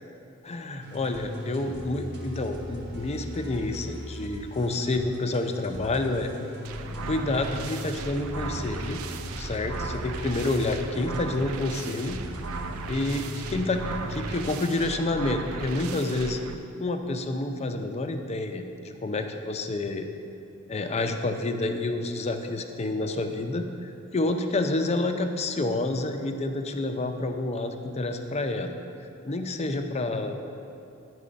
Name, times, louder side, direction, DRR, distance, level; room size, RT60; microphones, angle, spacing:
voice 1, 0.4-6.3 7.0-9.0 9.4-12.2 12.9-16.4 16.8-20.1 20.7-28.7 29.2-30.4, left 2 dB, 30° left, 6 dB, 0.5 m, -29 dB
sound 1, 0.8-14.5, left 1 dB, 55° right, 1.1 m, -39 dB
sound 2, 6.6-16.5, right 4 dB, 90° right, 0.5 m, -37 dB
9.8 x 4.8 x 5.1 m, 2.6 s
head